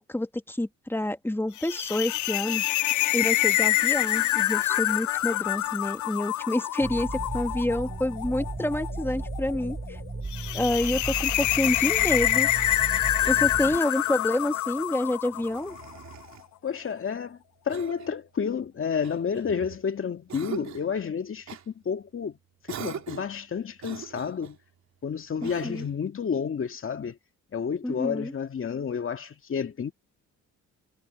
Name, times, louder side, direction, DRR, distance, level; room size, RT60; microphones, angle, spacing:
voice 1, 0.0-2.6 3.1-10.0 10.5-12.5 13.3-15.8 25.4-25.9 27.8-28.3, left 1 dB, 5° left, 2.1 m, -28 dB
sound 1, 1.6-15.9, left 15 dB, 70° left, 0.6 m, -27 dB
sound 2, 6.8-13.8, right 3 dB, 20° right, 1.7 m, -35 dB
Cough, 13.2-14.0 15.3-16.5 17.7-18.2 19.0-19.8 20.3-20.9 21.5-21.7 22.7-23.4 23.8-24.6 25.4-26.0, right 9 dB, 65° right, 3.3 m, -42 dB
voice 2, 16.6-17.4 17.7-22.4 22.7-24.6 25.0-27.2 27.5-29.9, left 6 dB, 45° left, 2.2 m, -30 dB
cardioid pair, 90°, 30 cm